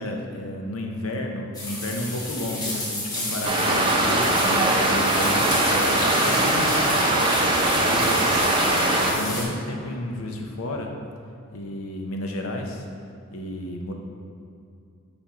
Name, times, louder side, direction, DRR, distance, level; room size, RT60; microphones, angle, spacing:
voice 1, 0.0-10.9 11.5-12.9 13.3-13.9, left 1 dB, 80° left, 2 dB, 0.8 m, -32 dB
sound 1, 1.5-9.4, left 1 dB, 20° left, 1.1 m, -30 dB
sound 2, 3.4-9.1, right 2 dB, 25° right, 0.6 m, -21 dB
6.9 x 5.3 x 3.0 m, 2.5 s
head